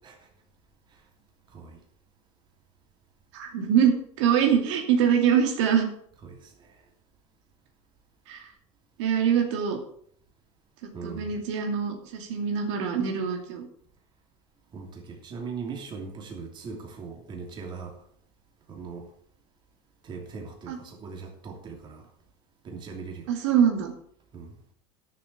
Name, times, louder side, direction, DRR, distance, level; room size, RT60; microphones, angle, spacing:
voice 1, 3.3-5.9 8.3-8.5 9.0-9.8 10.8-13.7 20.7-20.8 23.3-23.9, right 8 dB, 85° right, 2 dB, 2.6 m, -24 dB
voice 2, 6.2-6.8 10.9-11.4 14.7-17.9 18.7-19.1 20.0-22.1 22.6-23.3 24.3-24.6, right 5 dB, 30° right, 1 dB, 2.9 m, -40 dB
11.5 x 7.0 x 6.8 m, 0.63 s
supercardioid pair, 140°, 15 cm